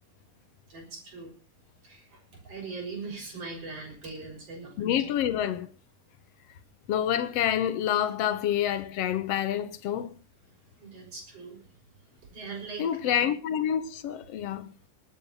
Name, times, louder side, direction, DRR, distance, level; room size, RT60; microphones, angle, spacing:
voice 1, 0.7-1.3 1.8-2.2 2.4-4.9 10.8-11.6 12.3-12.9, right 4 dB, 50° right, 7.4 m, -40 dB
voice 2, 4.8-5.7 6.9-10.2 12.8-14.7, left 10 dB, 60° left, 1.9 m, -27 dB
19.5 x 9.1 x 5.6 m
omnidirectional pair, 3.6 m